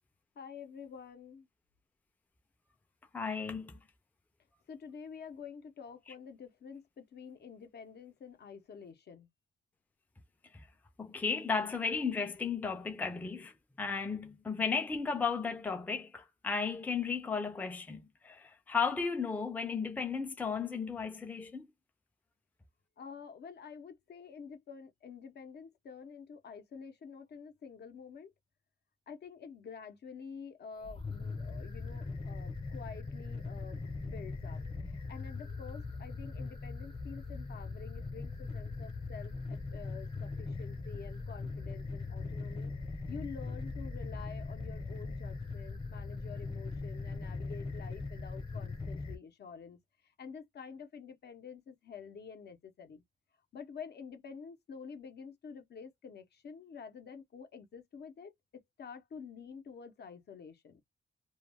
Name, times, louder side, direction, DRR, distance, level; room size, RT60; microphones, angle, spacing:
voice 1, 0.4-1.5 4.7-9.3 23.0-28.3 29.1-34.6 34.9-42.7 43.1-49.8 50.2-53.0 53.5-60.8, left 6 dB, 60° left, 0.7 m, -49 dB
voice 2, 3.1-3.8 10.5-10.7 11.0-21.7, left 5 dB, 10° left, 0.4 m, -34 dB
sound 1, 30.8-49.2, left 3 dB, 25° left, 0.8 m, -40 dB
2.3 x 2.2 x 3.2 m
wide cardioid pair, 150°, 20 cm